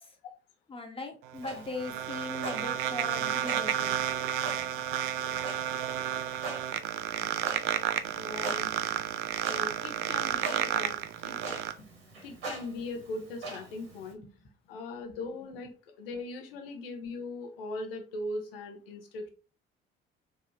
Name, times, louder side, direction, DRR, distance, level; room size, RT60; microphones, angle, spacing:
voice 1, 0.7-4.0 8.1-8.2 9.3-9.4 11.8-11.9 14.2-14.3, left 3 dB, 20° left, 6 dB, 0.9 m, -40 dB
sound 1, 1.2-11.7, right 11 dB, 45° right, 0.4 m, -31 dB
Clock, 1.3-14.1, right 2 dB, 80° right, 1.1 m, -44 dB
voice 2, 8.2-8.7 9.5-11.6 12.2-14.2 14.7-15.7 16.0-19.3, left 2 dB, 70° left, 5 dB, 0.8 m, -39 dB
4.8 x 2.3 x 2.7 m, 0.34 s
figure-of-eight pair, 50°, 30 cm